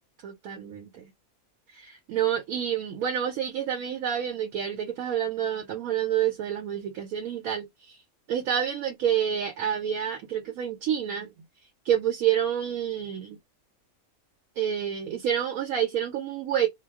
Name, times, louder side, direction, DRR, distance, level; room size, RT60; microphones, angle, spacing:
voice 1, 0.2-1.1 1.7-8.0 8.3-11.3 11.8-13.4 14.6-16.7, right 9 dB, 85° right, 1.0 m, -28 dB
2.3 x 2.2 x 3.4 m
omnidirectional pair, 1.5 m